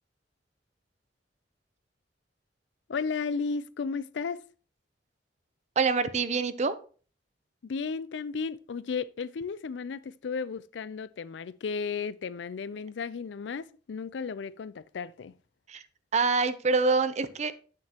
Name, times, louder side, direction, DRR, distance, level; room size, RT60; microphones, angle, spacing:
voice 1, 2.9-4.4 7.6-15.3, left 5 dB, 75° left, 0.4 m, -34 dB
voice 2, 5.8-6.8 15.7-15.8 16.1-17.5, right 4 dB, 40° right, 0.6 m, -25 dB
8.6 x 7.5 x 2.9 m
head